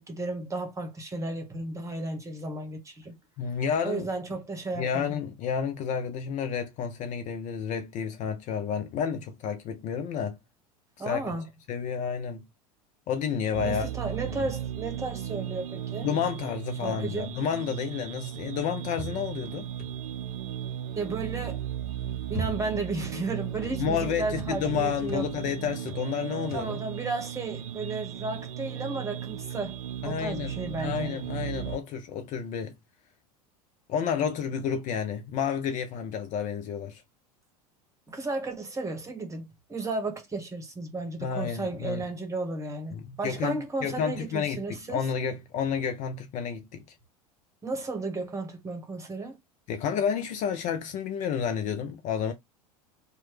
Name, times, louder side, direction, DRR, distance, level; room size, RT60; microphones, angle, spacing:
voice 1, 0.0-3.2 3.8-5.2 11.0-11.5 13.6-16.1 16.8-17.3 20.9-21.6 22.3-25.2 26.5-29.8 30.0-31.2 38.1-45.0 47.6-49.4, right 3 dB, 15° right, 1.2 m, -34 dB
voice 2, 3.4-4.1 4.8-10.4 11.1-11.3 11.7-12.4 13.1-13.9 16.0-19.7 23.8-26.8 30.0-30.5 30.8-32.7 33.9-37.0 41.2-42.0 42.9-46.8 49.7-52.3, left 7 dB, 40° left, 0.6 m, -30 dB
sound 1, 13.5-31.8, right 10 dB, 65° right, 0.5 m, -36 dB
sound 2, 18.9-20.3 21.8-23.0 23.2-23.9 24.3-24.6 25.0-25.3 25.8-26.1 26.4-26.8, equal, 60° left, 0.9 m, -40 dB
3.0 x 2.2 x 3.1 m
figure-of-eight pair, 85°, 20 cm